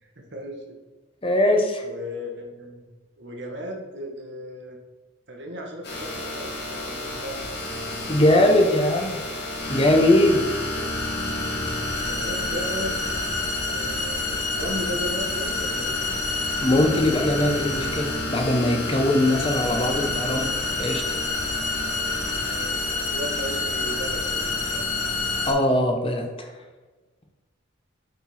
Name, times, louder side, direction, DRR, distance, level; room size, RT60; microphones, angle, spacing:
voice 1, 0.0-0.8 1.8-2.8 3.2-4.8 5.3-7.5 11.8-13.0 13.6-16.0 22.4-24.8, equal, 55° right, 1 dB, 1.3 m, -36 dB
voice 2, 1.2-1.8 8.1-9.2 9.7-10.4 16.6-20.5 20.8-21.0 25.4-26.5, left 1 dB, 25° left, 3 dB, 0.8 m, -21 dB
sound 1, 5.8-25.5, left 2 dB, 55° left, 2.1 m, -28 dB
8.0 x 4.5 x 4.2 m, 1.2 s
head